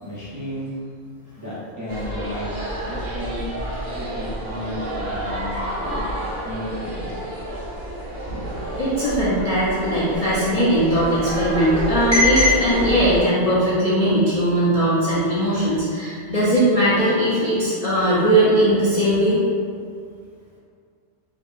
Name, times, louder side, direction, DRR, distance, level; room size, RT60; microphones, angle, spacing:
voice 1, 0.0-0.7 1.3-2.5 2.9-3.5 3.9-5.5 5.8-6.1 6.4-7.2, equal, 20° right, -12 dB, 0.6 m, -32 dB
sound 1, 1.9-13.2, right 1 dB, 55° right, 0.7 m, -29 dB
voice 2, 8.8-19.4, equal, 55° left, -9 dB, 0.4 m, -19 dB
2.7 x 2.6 x 2.4 m, 2.2 s
omnidirectional pair, 1.3 m